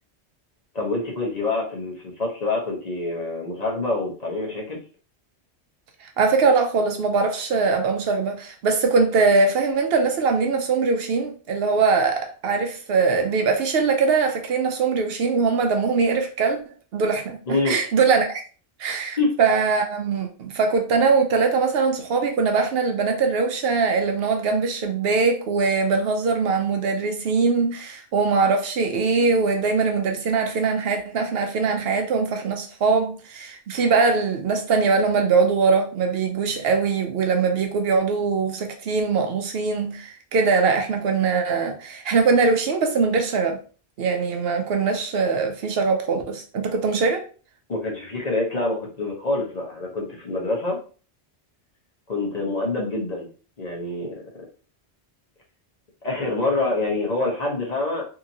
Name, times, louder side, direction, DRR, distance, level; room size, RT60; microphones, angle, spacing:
voice 1, 0.7-4.8 17.5-17.8 19.2-19.3 47.7-50.8 52.1-53.3 53.6-54.2 56.0-58.1, left 2 dB, 40° left, 0.8 m, -26 dB
voice 2, 6.0-16.6 16.9-18.4 18.8-43.6 44.0-47.2, right 4 dB, 65° right, 0.7 m, -22 dB
2.8 x 2.7 x 2.6 m
omnidirectional pair, 1.1 m